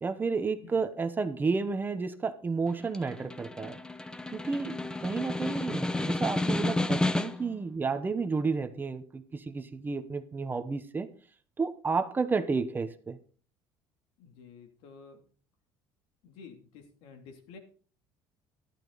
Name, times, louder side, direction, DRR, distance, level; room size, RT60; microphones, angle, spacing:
voice 1, 0.0-3.8 4.3-11.1 11.6-13.2, right 4 dB, 20° right, 9 dB, 1.0 m, -31 dB
voice 2, 0.5-0.9 14.2-15.2 16.2-17.6, left 5 dB, 80° left, 4 dB, 3.0 m, -51 dB
Snare drum, 2.7-7.6, left 2 dB, 10° left, 0.8 m, -31 dB
12.5 x 11.5 x 4.0 m, 0.40 s
cardioid pair, 140°, 10 cm